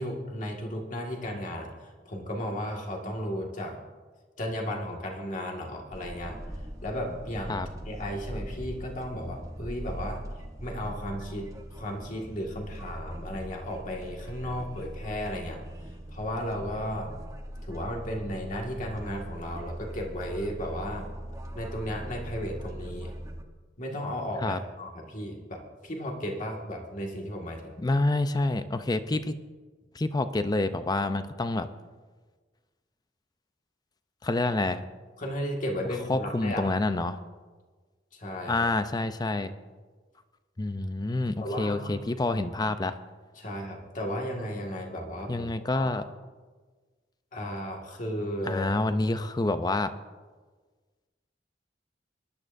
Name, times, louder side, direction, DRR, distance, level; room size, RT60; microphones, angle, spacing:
voice 1, 0.0-1.7 2.1-3.8 4.4-6.4 6.8-10.2 10.6-15.6 16.1-17.1 17.7-21.1 21.5-23.1 23.8-27.8 35.2-36.6 38.1-38.6 41.4-41.9 43.4-45.9 47.3-48.8, equal, 45° left, 0 dB, 1.9 m, -34 dB
sound 1, 5.9-23.4, right 1 dB, 20° right, 0.9 m, -41 dB
voice 2, 27.8-29.4 29.9-31.7 34.2-34.8 36.1-37.2 38.5-39.5 40.6-42.9 45.3-46.0 48.4-49.9, left 2 dB, 20° left, 10 dB, 0.5 m, -27 dB
20.5 x 11.0 x 2.6 m, 1.4 s
head